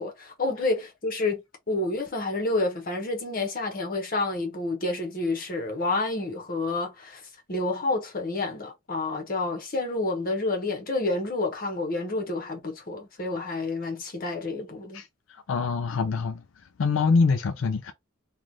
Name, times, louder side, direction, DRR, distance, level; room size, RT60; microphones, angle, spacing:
voice 1, 0.0-7.2 7.5-15.0, left 2 dB, 45° left, 1.1 m, -29 dB
voice 2, 14.9-17.9, left 4 dB, 75° left, 0.4 m, -25 dB
3.1 x 2.4 x 3.8 m
head